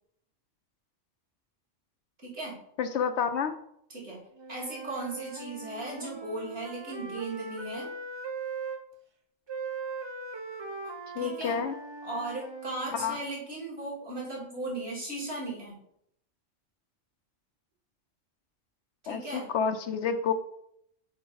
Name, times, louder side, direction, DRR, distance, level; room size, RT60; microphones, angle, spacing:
voice 1, 2.2-2.6 3.9-4.2 4.5-7.9 10.8-11.6 12.0-15.8 19.0-19.5, right 2 dB, 55° right, -5 dB, 2.6 m, -37 dB
voice 2, 2.8-3.5 11.2-11.7 12.9-13.2 19.1-20.3, left 6 dB, 70° left, 8 dB, 0.8 m, -29 dB
Wind instrument woodwind instrument, 4.4-8.8 9.5-13.2, right 4 dB, 35° right, 0.4 m, -40 dB
5.1 x 4.8 x 5.3 m, 0.73 s
omnidirectional pair, 1.3 m